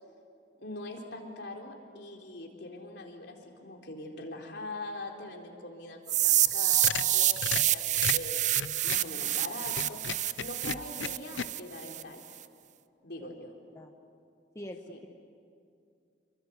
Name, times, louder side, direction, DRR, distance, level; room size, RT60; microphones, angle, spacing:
voice 1, 0.6-8.4 8.8-10.0 10.4-12.2 13.0-13.5 14.9-15.0, left 2 dB, 65° left, 1 dB, 4.0 m, -42 dB
sound 1, 6.1-12.0, right 13 dB, 40° right, 0.6 m, -27 dB
sound 2, 6.5-9.1 9.7-11.5, left 7 dB, 85° left, 0.7 m, -36 dB
voice 2, 14.5-15.1, equal, 15° left, 3 dB, 1.1 m, -43 dB
28.0 x 24.0 x 8.4 m, 2.4 s
head